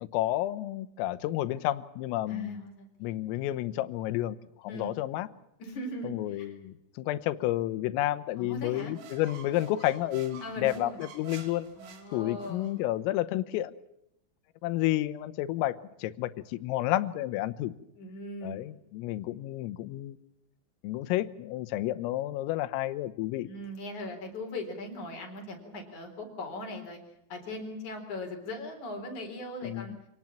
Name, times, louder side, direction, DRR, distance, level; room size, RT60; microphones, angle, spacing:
voice 1, 0.0-2.7 3.0-5.3 6.0-11.7 12.1-13.7 14.6-17.7 18.4-20.2 20.8-23.5 29.6-30.0, left 15 dB, 90° left, 12 dB, 3.7 m, -31 dB
voice 2, 2.3-3.1 4.7-4.9 5.6-6.5 8.4-8.9 10.4-11.0 11.8-12.8 18.0-18.7 23.5-27.0 27.3-30.0, left 1 dB, 40° left, 4 dB, 5.0 m, -39 dB
sound 1, 8.7-12.7, right 6 dB, 85° right, 5.4 m, -48 dB
27.0 x 18.5 x 7.3 m, 0.81 s
omnidirectional pair, 5.8 m